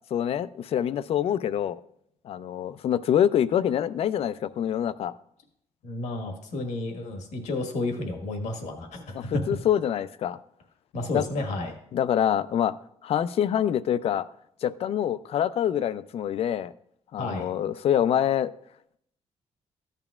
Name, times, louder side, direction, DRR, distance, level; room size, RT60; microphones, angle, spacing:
voice 1, 0.1-1.8 2.2-5.1 9.1-10.4 11.1-11.2 11.9-12.7 13.0-14.3 14.6-16.7 17.1-18.5, left 10 dB, 55° left, 15 dB, 0.4 m, -25 dB
voice 2, 5.8-9.3 10.9-11.8 17.2-17.5, left 2 dB, 85° left, 4 dB, 1.5 m, -32 dB
14.0 x 8.9 x 2.4 m, 0.72 s
cardioid pair, 135°, 12 cm